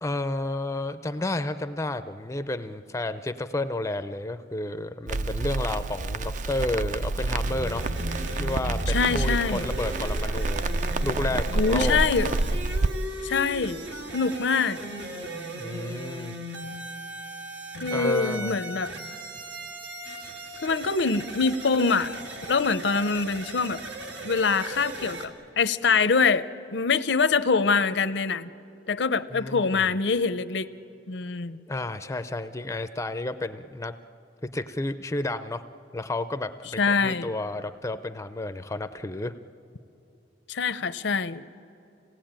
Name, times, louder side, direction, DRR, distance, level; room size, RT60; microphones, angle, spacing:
voice 1, 0.0-7.8 8.4-10.6 11.0-12.0 15.6-16.3 17.9-18.6 29.3-29.9 31.7-33.9 34.5-35.6 35.9-39.3, left 2 dB, 15° left, 11 dB, 0.5 m, -31 dB
Crackle, 5.1-12.9, right 2 dB, 45° right, 0.4 m, -28 dB
sound 1, 7.4-25.3, right 1 dB, 85° right, 2.4 m, -37 dB
voice 2, 8.9-9.7 11.6-12.4 13.2-13.8 14.1-14.8 17.8-18.9 20.6-23.8 24.2-26.4 26.7-28.5 28.9-30.7 31.1-31.6 36.8-37.3 40.5-41.4, left 5 dB, 75° left, 14 dB, 0.7 m, -24 dB
26.5 x 18.0 x 8.9 m, 2.8 s
head